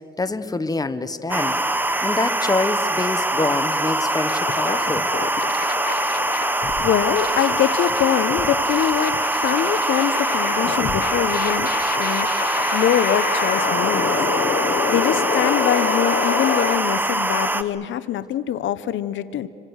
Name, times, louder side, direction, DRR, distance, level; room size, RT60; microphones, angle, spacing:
voice 1, 0.2-1.6 2.0-5.1 14.6-14.7, left 3 dB, 20° left, 12 dB, 1.3 m, -26 dB
sound 1, 1.3-17.6, right 1 dB, 10° right, 1.1 m, -23 dB
sound 2, 4.3-16.8, left 7 dB, 50° left, 1.2 m, -28 dB
voice 2, 6.8-11.7 12.0-12.3 12.7-14.3 14.9-19.5, left 10 dB, 75° left, 15 dB, 0.9 m, -23 dB
27.5 x 24.0 x 6.5 m, 2.7 s
cardioid pair, 90°, 20 cm